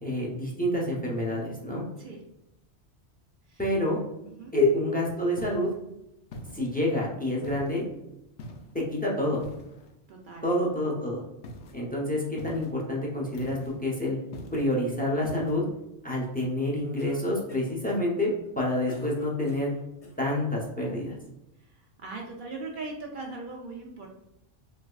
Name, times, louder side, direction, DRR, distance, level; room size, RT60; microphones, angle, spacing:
voice 1, 0.0-1.8 3.6-4.0 4.5-5.7 6.5-7.8 8.7-9.4 10.4-11.2 11.7-14.2 14.5-15.6 16.0-19.7 20.2-21.2, left 1 dB, 15° left, -3 dB, 0.3 m, -28 dB
sound 1, 5.4-5.8 6.3-6.9 7.4-7.8 8.4-8.8 9.4-9.9 11.4-11.8 12.4-12.8 13.3-13.8 14.3-14.7 15.2-15.6, left 1 dB, 65° left, 0.8 m, -43 dB
voice 2, 10.1-10.4 22.0-24.1, right 3 dB, 55° right, 0 dB, 0.6 m, -39 dB
Cough, 17.0-17.8 18.4-20.2, left 2 dB, 35° left, 0.7 m, -49 dB
3.3 x 3.3 x 2.3 m, 0.86 s
omnidirectional pair, 1.2 m